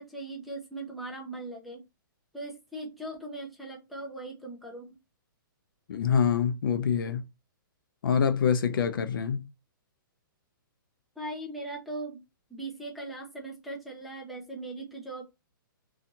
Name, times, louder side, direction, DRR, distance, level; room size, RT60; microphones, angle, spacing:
voice 1, 0.0-1.8 2.3-5.0 11.2-12.2 12.5-15.2, right 2 dB, ahead, 0.4 m, -39 dB
voice 2, 5.9-7.2 8.0-9.5, left 7 dB, 75° left, 0.5 m, -25 dB
2.5 x 2.4 x 2.8 m
hypercardioid pair, 155°, 12 cm